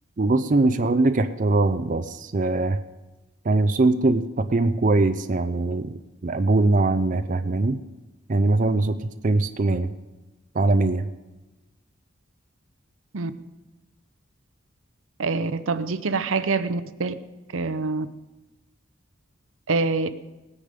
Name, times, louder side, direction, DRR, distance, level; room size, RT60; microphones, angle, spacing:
voice 1, 0.2-2.8 3.5-7.8 8.3-9.0 9.2-9.9 10.6-11.1, right 2 dB, 40° right, 10 dB, 0.5 m, -21 dB
voice 2, 15.2-17.1 17.5-18.1 19.7-20.1, right 3 dB, 75° right, 13 dB, 0.7 m, -25 dB
18.5 x 9.8 x 5.2 m, 1.1 s
head